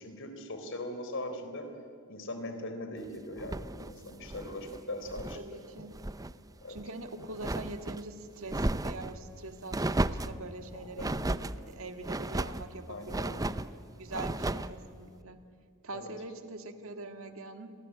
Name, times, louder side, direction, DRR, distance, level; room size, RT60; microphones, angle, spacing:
voice 1, 0.0-1.7 2.1-5.6 6.6-6.8 10.7-11.4 12.9-13.4 15.9-16.3, left 1 dB, 60° left, 7 dB, 3.8 m, -40 dB
sound 1, 3.4-5.4 5.8-6.3 6.7-8.0 8.5-9.1 9.7-10.4 11.0-11.6 12.0-12.7 13.1-13.7 14.1-14.7, right 2 dB, 15° right, 0.6 m, -34 dB
voice 2, 5.3-6.0 6.7-11.4 11.7-13.6 14.0-15.4 15.8-17.7, right 2 dB, 65° right, 7 dB, 2.0 m, -43 dB
29.5 x 23.5 x 8.6 m, 2.4 s
head